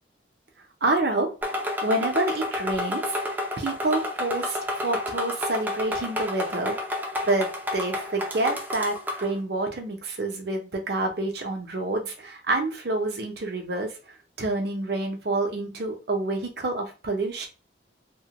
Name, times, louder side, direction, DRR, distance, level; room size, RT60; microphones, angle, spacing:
voice 1, 0.8-3.2 3.6-6.7 7.3-13.9 14.4-17.5, right 2 dB, 55° right, 3 dB, 0.6 m, -28 dB
sound 1, 1.4-9.3, left 1 dB, 10° right, 0.4 m, -30 dB
2.9 x 2.1 x 2.8 m, 0.31 s
head